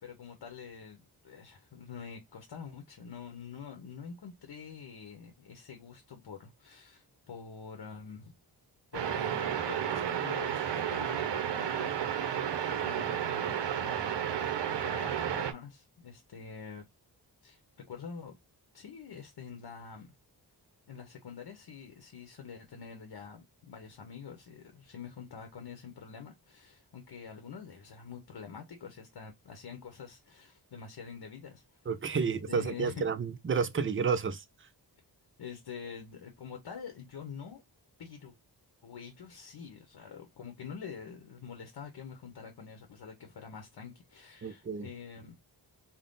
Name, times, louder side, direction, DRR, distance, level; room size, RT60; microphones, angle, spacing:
voice 1, 0.0-8.3 8.9-16.8 17.4-17.6 17.9-18.4 18.7-20.1 20.9-31.8 32.1-33.1 35.4-37.6 38.0-38.3 38.8-45.4, left 6 dB, 70° left, 0.9 m, -46 dB
sound 1, 8.9-15.5, right 9 dB, 80° right, 0.7 m, -32 dB
voice 2, 31.9-34.4 44.4-44.9, right 5 dB, 30° right, 0.4 m, -31 dB
3.6 x 2.1 x 3.8 m
wide cardioid pair, 115°, 42 cm